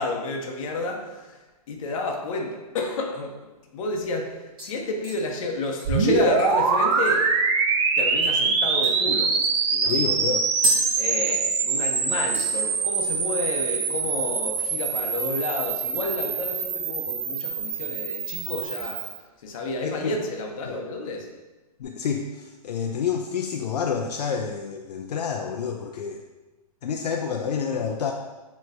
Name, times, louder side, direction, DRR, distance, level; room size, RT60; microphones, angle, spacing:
voice 1, 0.0-1.4 1.7-3.4 3.7-7.5 8.0-9.4 9.7-10.0 11.0-19.0 19.4-21.3, left 2 dB, 55° left, 1 dB, 0.8 m, -30 dB
sound 1, 3.5-3.6 4.0-4.3 4.6-7.4 7.8-7.9 8.2-8.4 8.8-11.8 12.1-12.6 12.9-13.3 13.6-13.7 15.8-16.4 16.7-17.5 17.9-18.2 18.7-19.6 20.0-20.1, right 1 dB, 20° right, 1.0 m, -34 dB
sound 2, 5.8-19.2, right 5 dB, 45° right, 0.6 m, -24 dB
voice 2, 9.9-10.4 19.8-20.2 21.8-26.2 26.8-28.1, left 6 dB, 85° left, 2 dB, 0.4 m, -28 dB
6.3 x 3.0 x 2.5 m, 1.2 s
hypercardioid pair, 140°, 20 cm